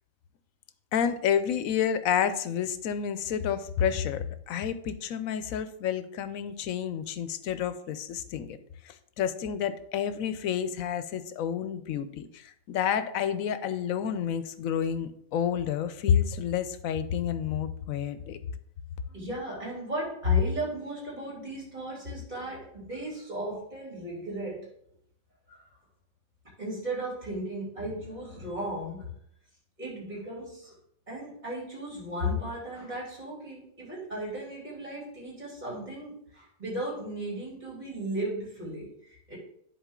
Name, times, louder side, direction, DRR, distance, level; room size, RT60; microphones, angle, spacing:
voice 1, 0.9-8.6 8.8-18.4, left 8 dB, 85° left, 12 dB, 1.0 m, -29 dB
voice 2, 19.1-24.7 25.5-25.6 26.6-29.1 29.8-30.7 31.1-39.4, left 1 dB, 30° right, -5 dB, 3.4 m, -34 dB
10.0 x 4.4 x 3.7 m, 0.69 s
omnidirectional pair, 1.4 m